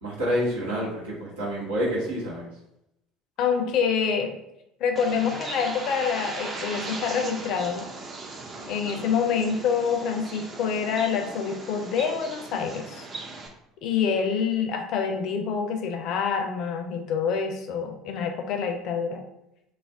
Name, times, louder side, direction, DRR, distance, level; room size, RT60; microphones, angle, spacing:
voice 1, 0.0-2.5, equal, 80° right, -7 dB, 1.2 m, -28 dB
voice 2, 3.4-4.4 4.8-7.9 8.7-13.1 13.8-19.3, left 6 dB, 55° left, 4 dB, 0.4 m, -26 dB
Bird, 5.0-13.5, right 3 dB, 35° right, 0.6 m, -38 dB
2.5 x 2.0 x 3.4 m, 0.83 s
figure-of-eight pair, 60°, 0 cm